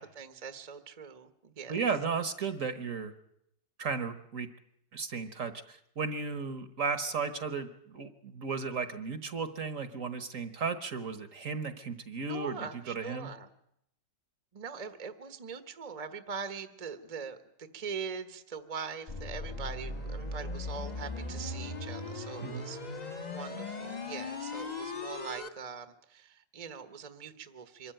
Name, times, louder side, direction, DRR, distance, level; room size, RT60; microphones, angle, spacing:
voice 1, 0.0-1.8 12.3-13.5 14.5-27.9, right 6 dB, 30° right, 9 dB, 0.9 m, -42 dB
voice 2, 1.7-3.1 3.8-4.5 4.9-12.6 12.9-13.3 22.4-22.6, right 5 dB, 50° right, 10 dB, 1.3 m, -34 dB
sound 1, 19.1-25.5, left 2 dB, 30° left, 1.0 m, -38 dB
24.0 x 13.5 x 9.0 m, 0.77 s
omnidirectional pair, 1.9 m